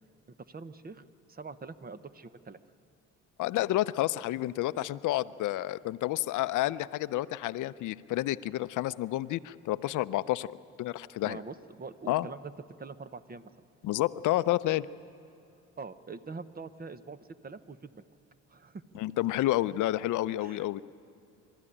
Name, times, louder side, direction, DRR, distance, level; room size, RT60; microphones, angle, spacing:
voice 1, 0.5-2.6 11.2-12.5 12.8-13.5 15.8-18.0 18.5-18.8 20.4-20.6, right 4 dB, 30° right, 12 dB, 0.9 m, -44 dB
voice 2, 3.4-10.5 10.8-11.4 12.1-12.3 13.8-14.9 19.0-20.8, left 15 dB, 80° left, 15 dB, 0.5 m, -30 dB
25.5 x 13.5 x 9.9 m, 2.7 s
cardioid pair, 90°, 30 cm